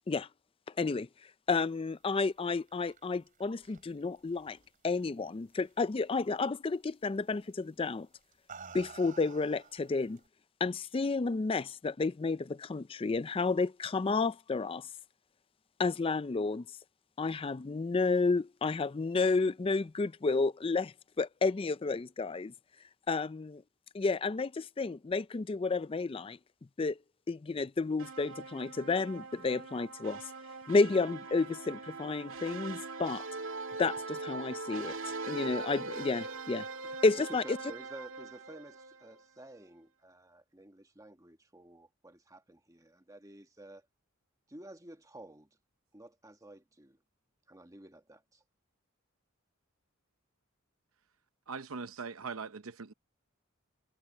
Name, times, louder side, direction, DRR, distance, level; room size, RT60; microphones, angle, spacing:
voice 1, 0.8-1.1 1.5-4.6 4.8-8.1 8.7-10.2 10.6-14.9 15.8-16.7 17.2-22.5 23.1-23.6 23.9-26.4 26.8-27.0 27.3-30.2 30.7-33.3 33.8-35.0 35.3-36.7 37.0-37.6, left 4 dB, 25° left, 0.4 m, -31 dB
sound 1, 2.4-5.3 5.6-6.1 7.3-7.5 8.2-10.3, right 5 dB, 40° right, 3.5 m, -52 dB
sound 2, 28.0-39.2, right 3 dB, 70° right, 1.9 m, -42 dB
voice 2, 37.4-43.8 44.5-45.5 45.9-47.0 47.5-48.4, right 1 dB, 15° right, 1.3 m, -52 dB
voice 3, 51.5-52.9, right 5 dB, 85° right, 0.8 m, -41 dB
head